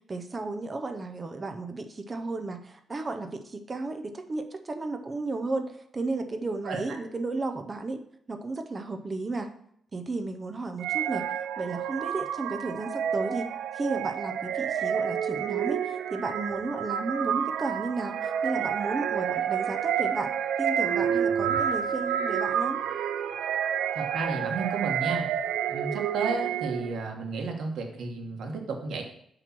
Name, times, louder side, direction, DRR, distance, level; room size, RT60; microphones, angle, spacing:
voice 1, 0.1-8.0 8.3-9.5 9.9-11.3 11.6-13.5 13.7-20.3 20.6-22.8, right 3 dB, 25° right, 7 dB, 0.6 m, -33 dB
sound 1, 10.8-27.0, right 9 dB, 85° right, 0.4 m, -29 dB
voice 2, 23.9-25.3 25.7-29.0, right 4 dB, 70° right, 3 dB, 1.3 m, -32 dB
7.7 x 3.1 x 5.9 m, 0.70 s
wide cardioid pair, 160°, 0 cm